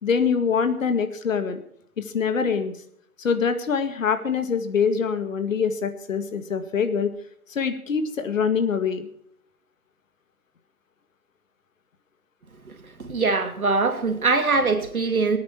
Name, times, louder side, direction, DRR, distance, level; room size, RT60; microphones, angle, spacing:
voice 1, 0.0-1.6 2.0-2.7 3.2-7.1 7.5-9.1, left 6 dB, 65° left, 9 dB, 2.1 m, -24 dB
voice 2, 12.7-15.4, right 4 dB, 80° right, 6 dB, 2.6 m, -23 dB
23.0 x 9.5 x 4.5 m, 0.67 s
figure-of-eight pair, 120°, 42 cm